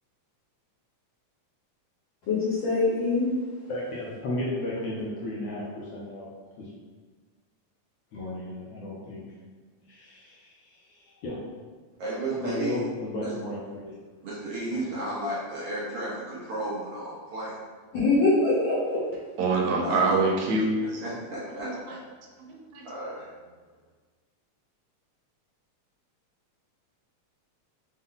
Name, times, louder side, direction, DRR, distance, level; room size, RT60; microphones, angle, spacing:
voice 1, 2.3-3.3 17.9-19.0, left 3 dB, 85° left, -8 dB, 1.0 m, -23 dB
voice 2, 3.7-6.2 6.6-6.7 8.1-9.2 9.9-11.4 12.3-13.9 14.7-14.9, left 1 dB, 70° left, -6 dB, 1.5 m, -34 dB
voice 3, 12.0-12.8 13.2-13.3 14.2-17.6 19.8-20.2 21.0-22.0 22.8-23.3, right 1 dB, 65° right, -7 dB, 1.5 m, -33 dB
voice 4, 19.4-21.0 21.6-21.7 22.5-22.9, right 3 dB, 85° right, -1 dB, 2.1 m, -25 dB
5.4 x 2.2 x 3.7 m, 1.4 s
omnidirectional pair, 3.3 m